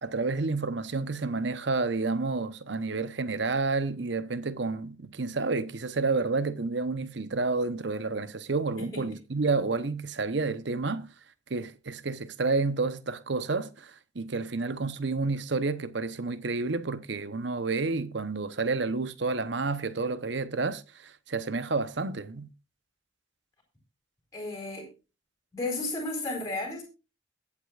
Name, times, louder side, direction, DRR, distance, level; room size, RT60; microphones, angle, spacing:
voice 1, 0.0-11.1 11.5-22.5, right 3 dB, 65° right, 0.9 m, -30 dB
voice 2, 24.3-24.9 25.5-26.8, left 2 dB, 15° left, 4.2 m, -33 dB
22.0 x 8.5 x 2.4 m
head